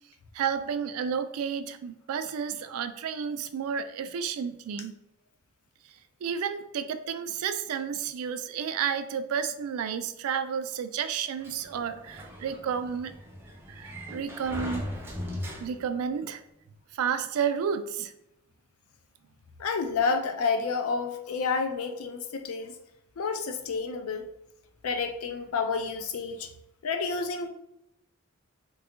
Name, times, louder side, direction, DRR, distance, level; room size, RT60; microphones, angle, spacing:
voice 1, 0.3-4.9 6.2-13.1 13.7-14.9 15.6-16.4 16.9-18.1, right 7 dB, 80° right, 10 dB, 0.3 m, -31 dB
Sliding door, 11.4-16.1, equal, 10° right, 0.4 m, -39 dB
voice 2, 19.6-22.7 23.2-24.3 24.8-26.5 26.8-27.5, left 4 dB, 80° left, 6 dB, 0.4 m, -29 dB
2.7 x 2.3 x 3.6 m, 0.85 s
head